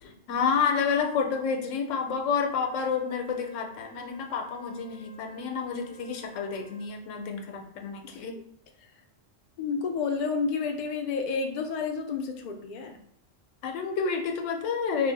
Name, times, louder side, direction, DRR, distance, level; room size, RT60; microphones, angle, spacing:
voice 1, 0.3-8.4 13.6-15.1, left 6 dB, 80° left, 4 dB, 1.0 m, -29 dB
Wind instrument woodwind instrument, 2.6-7.0, right 1 dB, 85° right, 1.6 m, -53 dB
voice 2, 9.6-13.0, left 5 dB, 65° left, 3 dB, 0.4 m, -30 dB
3.1 x 2.0 x 3.9 m, 0.74 s
omnidirectional pair, 1.3 m